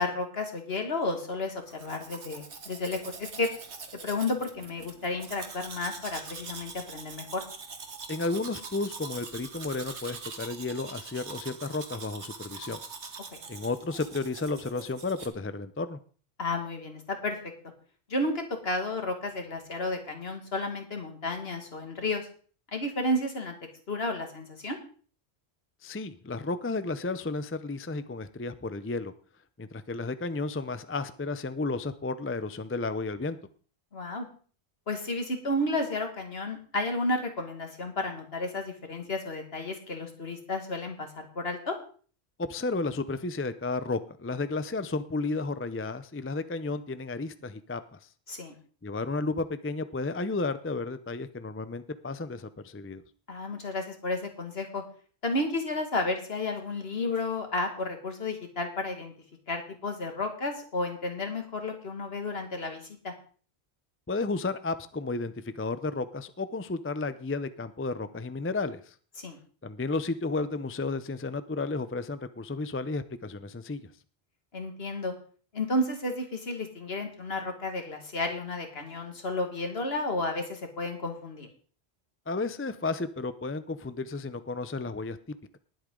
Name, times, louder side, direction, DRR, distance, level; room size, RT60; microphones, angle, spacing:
voice 1, 0.0-3.5 4.0-7.4 16.4-17.4 18.1-22.3 22.7-23.5 23.9-24.8 33.9-34.3 34.9-41.8 48.3-48.5 53.3-54.8 55.2-59.1 59.5-63.1 69.2-69.4 74.5-75.1 75.5-81.5, left 2 dB, 65° left, 4 dB, 2.3 m, -32 dB
Domestic sounds home sounds, 1.7-15.3, right 4 dB, 85° right, 1.7 m, -43 dB
voice 2, 8.1-12.8 13.5-16.0 25.8-29.1 29.6-33.4 42.4-48.1 48.8-53.0 64.1-68.9 69.6-73.9 82.3-85.2, left 3 dB, 15° left, 12 dB, 0.4 m, -33 dB
19.5 x 8.2 x 3.8 m, 0.42 s
omnidirectional pair, 1.1 m